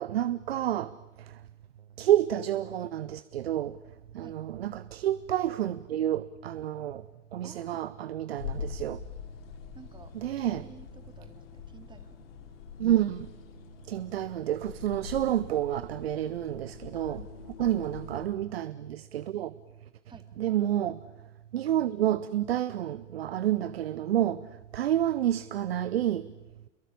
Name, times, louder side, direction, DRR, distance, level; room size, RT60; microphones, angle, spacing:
voice 1, 0.0-1.5 2.0-3.8 4.1-9.0 10.1-10.7 12.8-13.3 13.9-17.3 17.6-19.9 20.4-21.1 21.5-26.3, right 11 dB, 60° right, 0.9 m, -29 dB
voice 2, 7.4-7.8 9.7-10.1 10.4-12.3 16.9-17.3 17.6-17.7 20.1-20.3, right 4 dB, 15° right, 2.8 m, -52 dB
sound 1, 8.4-18.3, left 6 dB, 55° left, 4.9 m, -44 dB
29.5 x 22.5 x 8.6 m
figure-of-eight pair, 95°, 35 cm